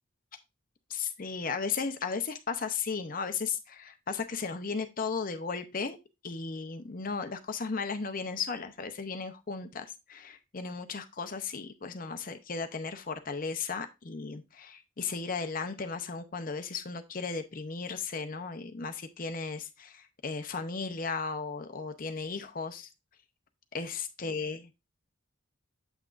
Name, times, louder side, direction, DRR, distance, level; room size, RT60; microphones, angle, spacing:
voice 1, 0.9-6.0 6.2-22.9 23.7-24.7, left 5 dB, 40° left, 8 dB, 0.7 m, -35 dB
8.0 x 6.0 x 2.5 m, 0.23 s
head